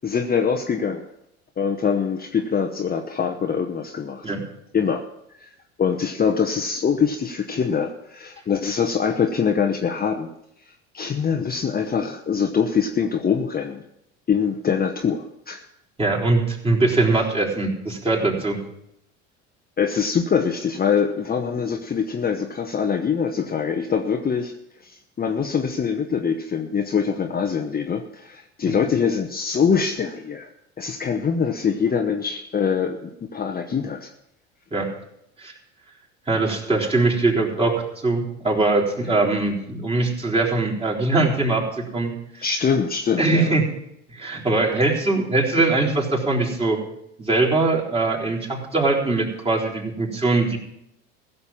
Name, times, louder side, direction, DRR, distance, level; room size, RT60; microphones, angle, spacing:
voice 1, 0.0-1.0 1.6-4.3 4.7-5.0 5.4-5.5 5.8-10.3 10.9-13.8 14.3-15.6 19.8-24.5 24.8-30.5 30.8-34.1 42.4-43.5, left 6 dB, 25° left, 4 dB, 1.0 m, -23 dB
voice 2, 16.0-18.6 28.7-28.8 34.7-34.9 35.4-35.5 36.3-42.5 43.2-43.6 44.1-46.8 47.2-50.6, right 2 dB, 15° right, -3 dB, 3.8 m, -22 dB
15.5 x 6.8 x 7.2 m, 0.80 s
hypercardioid pair, 75°, 35 cm